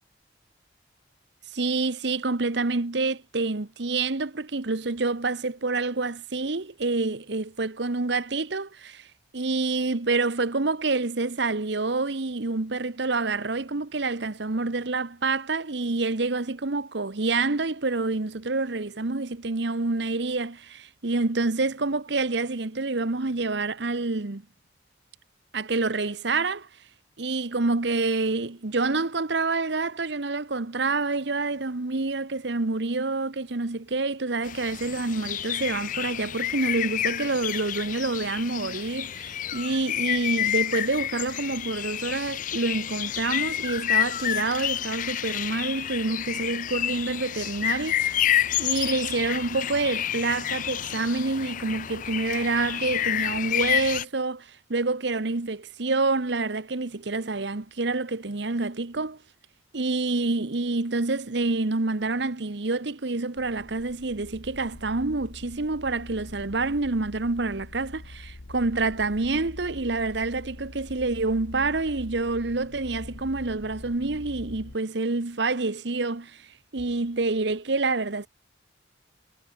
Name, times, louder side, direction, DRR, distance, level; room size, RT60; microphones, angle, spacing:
voice 1, 1.5-9.1 9.3-24.4 25.5-26.7 27.2-59.2 59.7-76.5 76.7-78.3, right 3 dB, 60° right, 1.1 m, -27 dB
sound 1, 34.4-54.0, left 11 dB, 45° left, 0.4 m, -29 dB
sound 2, 63.4-74.8, left 2 dB, 80° left, 1.2 m, -44 dB
head